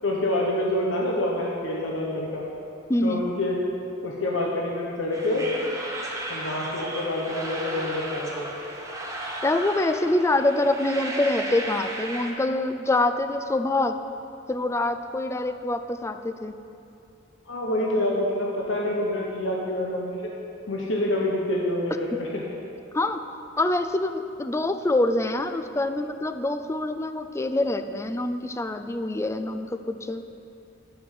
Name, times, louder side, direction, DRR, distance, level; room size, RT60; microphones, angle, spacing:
voice 1, 0.0-2.5 3.0-3.6 4.0-5.5 6.3-8.6 17.4-20.3 20.7-22.4, left 1 dB, 90° left, -3 dB, 1.2 m, -27 dB
voice 2, 2.9-3.2 9.4-14.0 14.5-16.5 22.9-23.2 23.6-30.2, left 2 dB, 15° left, 9 dB, 0.4 m, -25 dB
sound 1, 5.1-12.3, right 1 dB, 15° right, 1.1 m, -35 dB
9.4 x 6.2 x 7.4 m, 2.7 s
head